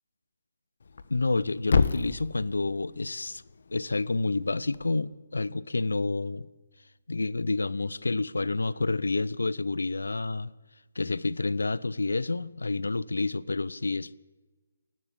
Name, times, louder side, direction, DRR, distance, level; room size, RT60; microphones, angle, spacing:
Thump thud, 0.8-4.9, left 5 dB, 55° left, 1.2 m, -31 dB
voice 1, 1.1-3.4 3.7-6.5 7.1-10.5 10.9-14.2, left 3 dB, 70° left, 0.7 m, -29 dB
28.0 x 12.0 x 8.9 m
figure-of-eight pair, 140°, 0 cm